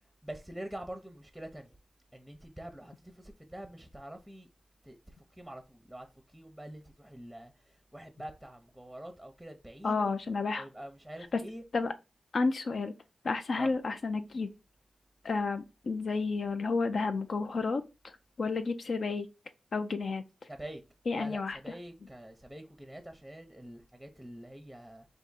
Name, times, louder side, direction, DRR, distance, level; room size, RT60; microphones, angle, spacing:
voice 1, 0.2-1.8 2.1-4.5 4.8-5.0 5.4-6.1 6.3-10.1 10.6-11.6 13.6-13.7 20.5-20.8 21.2-25.1, right 1 dB, 5° right, 0.7 m, -45 dB
voice 2, 9.8-10.7 11.2-11.4 11.7-11.9 12.3-12.9 13.2-14.5 15.2-18.1 18.4-19.3 19.7-20.2 21.0-22.1, left 4 dB, 70° left, 0.4 m, -31 dB
3.5 x 2.8 x 4.0 m
cardioid pair, 60°, 0 cm